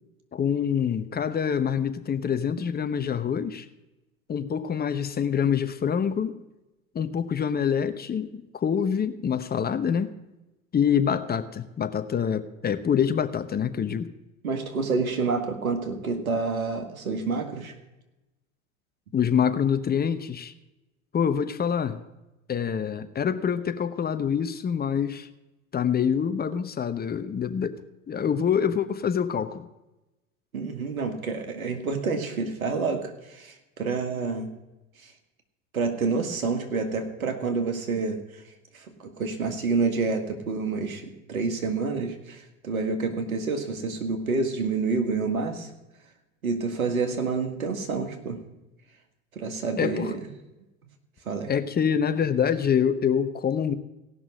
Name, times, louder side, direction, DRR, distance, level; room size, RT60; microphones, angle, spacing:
voice 1, 0.3-3.7 4.3-6.4 6.9-10.1 10.7-14.1 19.1-20.5 21.1-22.0 22.5-25.3 25.7-27.8 28.1-29.7 49.8-50.1 51.5-53.7, left 7 dB, 25° left, 11 dB, 0.8 m, -26 dB
voice 2, 14.4-17.7 30.5-34.5 35.0-35.1 35.7-38.4 38.7-45.7 46.4-48.4 49.4-50.2 51.3-51.5, right 4 dB, 90° right, 6 dB, 1.8 m, -28 dB
17.5 x 6.1 x 6.2 m, 1.0 s
hypercardioid pair, 85°, 41 cm